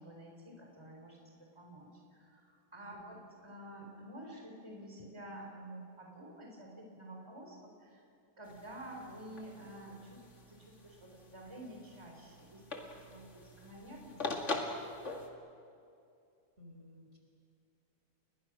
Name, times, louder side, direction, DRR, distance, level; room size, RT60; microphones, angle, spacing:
voice 1, 0.0-8.0 8.4-14.5, right 1 dB, 15° right, 0 dB, 4.2 m, -50 dB
voice 2, 2.8-3.2 16.6-17.2, left 1 dB, 40° right, 0 dB, 4.4 m, -56 dB
sound 1, 8.4-15.3, left 2 dB, 40° left, 2.5 m, -43 dB
30.0 x 22.5 x 6.2 m, 2.5 s
omnidirectional pair, 1.9 m